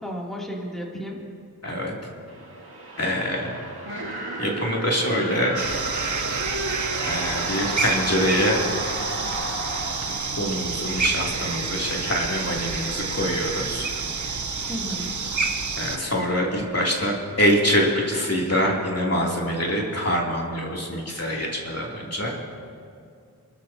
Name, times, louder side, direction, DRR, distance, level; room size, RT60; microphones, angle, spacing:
voice 1, 0.0-1.2 14.7-15.2, equal, ahead, -3 dB, 3.0 m, -33 dB
voice 2, 1.6-1.9 3.0-3.5 4.4-5.5 7.1-8.6 10.0-13.9 15.8-22.3, equal, 40° left, -3 dB, 3.1 m, -25 dB
sound 1, 2.3-11.1, right 1 dB, 80° right, 2.4 m, -33 dB
sound 2, 5.6-16.0, right 4 dB, 50° right, 0.8 m, -29 dB
29.0 x 13.5 x 2.9 m, 2.3 s
wide cardioid pair, 50°, 37 cm